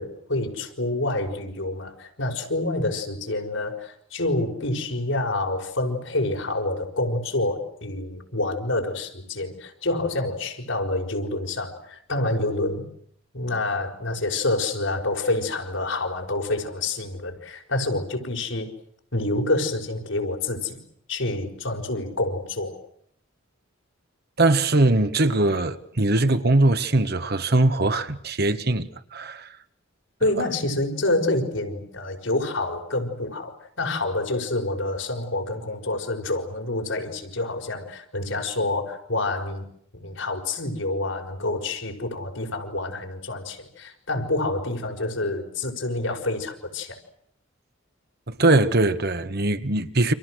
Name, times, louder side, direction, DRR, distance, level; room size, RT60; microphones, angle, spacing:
voice 1, 0.0-12.9 13.3-18.7 19.1-20.8 21.1-22.8 30.2-39.7 39.9-47.0, left 2 dB, 80° left, 5.6 m, -27 dB
voice 2, 24.4-29.5 48.3-50.1, right 2 dB, 55° right, 1.6 m, -21 dB
30.0 x 27.0 x 6.5 m
head